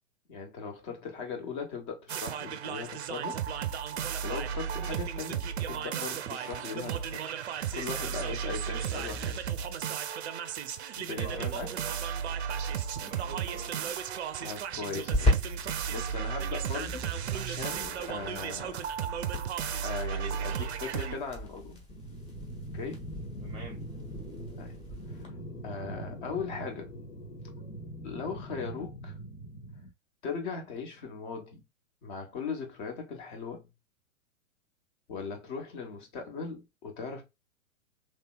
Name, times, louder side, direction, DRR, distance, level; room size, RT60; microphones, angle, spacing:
voice 1, 0.3-3.4 4.2-7.3 7.7-9.4 10.9-11.7 14.4-17.0 17.3-18.9 19.8-21.8 22.7-23.1 24.6-24.8 25.1-25.4 25.6-26.9 27.4-27.7 28.0-29.1 30.2-31.6 32.0-33.7 35.1-37.2, left 5 dB, 35° left, 1.1 m, -39 dB
sound 1, 2.1-21.2, right 8 dB, 50° right, 0.5 m, -34 dB
voice 2, 11.2-12.0 13.0-14.0 23.4-23.9, right 4 dB, 15° right, 0.6 m, -45 dB
sound 2, 14.0-25.3, left 1 dB, 15° left, 1.2 m, -37 dB
sound 3, 21.9-29.9, right 1 dB, 85° left, 1.2 m, -42 dB
3.2 x 2.7 x 2.2 m
figure-of-eight pair, 110°, 42 cm